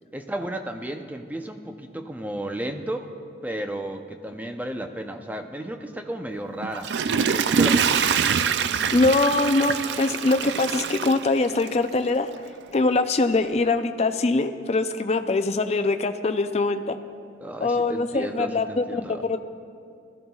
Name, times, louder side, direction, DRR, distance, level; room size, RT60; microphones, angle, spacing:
voice 1, 0.1-3.1 3.4-8.0 17.4-19.2, right 1 dB, 10° right, 5 dB, 0.6 m, -33 dB
Water / Toilet flush, 6.6-11.9 12.4-12.5, right 6 dB, 80° right, 0.4 m, -24 dB
voice 2, 8.9-12.3 12.7-17.0 17.6-19.4, left 3 dB, 40° left, 9 dB, 0.5 m, -23 dB
20.5 x 14.0 x 2.4 m, 2.3 s
head